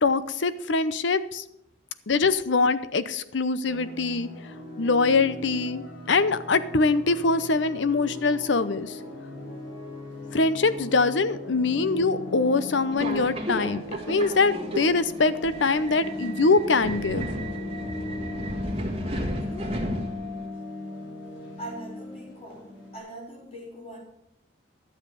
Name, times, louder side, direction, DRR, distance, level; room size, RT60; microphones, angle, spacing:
voice 1, 0.0-1.4 2.1-4.3 4.8-9.0 10.3-17.3, left 3 dB, 70° left, 14 dB, 0.7 m, -23 dB
sound 1, 3.7-23.0, left 2 dB, 90° left, 4.4 m, -38 dB
Subway metro underground, 12.9-20.5, right 1 dB, 30° right, 1.8 m, -33 dB
voice 2, 19.4-19.8 21.6-24.0, equal, 35° left, -4 dB, 4.6 m, -41 dB
11.5 x 7.5 x 6.8 m, 0.81 s
head